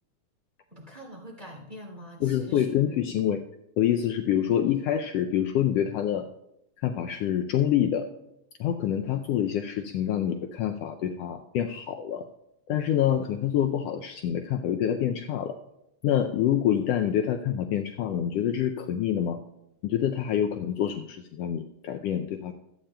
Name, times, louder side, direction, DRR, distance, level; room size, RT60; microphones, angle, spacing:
voice 1, 0.7-3.0, equal, 15° right, -2 dB, 2.7 m, -44 dB
voice 2, 2.2-3.4 3.8-6.3 6.8-8.1 8.6-12.3 12.7-15.6 16.0-19.4 19.8-22.5, left 10 dB, 85° left, 6 dB, 1.4 m, -26 dB
24.5 x 8.8 x 2.2 m, 0.84 s
omnidirectional pair, 3.4 m